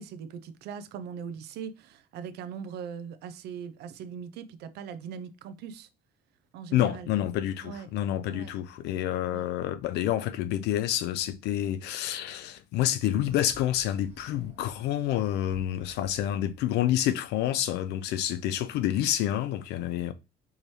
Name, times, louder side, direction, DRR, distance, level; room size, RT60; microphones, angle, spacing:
voice 1, 0.0-5.9 6.5-7.1 7.6-7.9 8.3-8.5 9.3-9.4, right 7 dB, 75° right, 0.6 m, -40 dB
voice 2, 6.7-20.1, left 12 dB, 85° left, 0.4 m, -28 dB
sound 1, 13.2-16.7, right 2 dB, 40° right, 1.2 m, -53 dB
4.8 x 2.7 x 3.2 m
cardioid pair, 110°, 17 cm